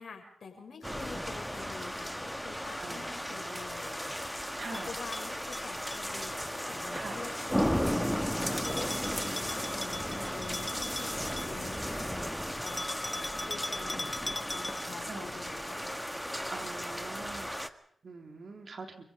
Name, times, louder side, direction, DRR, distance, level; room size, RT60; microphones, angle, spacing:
voice 1, 0.0-12.3 12.6-15.9, left 5 dB, 70° left, 3 dB, 6.2 m, -47 dB
sound 1, 0.8-17.7, equal, ahead, 1.5 m, -35 dB
voice 2, 0.9-1.2 2.8-3.6 4.5-4.9 6.9-7.2 15.1-15.3 16.5-19.0, right 4 dB, 60° right, 5 dB, 3.6 m, -45 dB
Bell, 4.7-6.5 8.6-11.9 12.7-15.1, left 1 dB, 20° left, 1.6 m, -40 dB
29.0 x 17.0 x 5.2 m, 0.68 s
supercardioid pair, 40°, 0 cm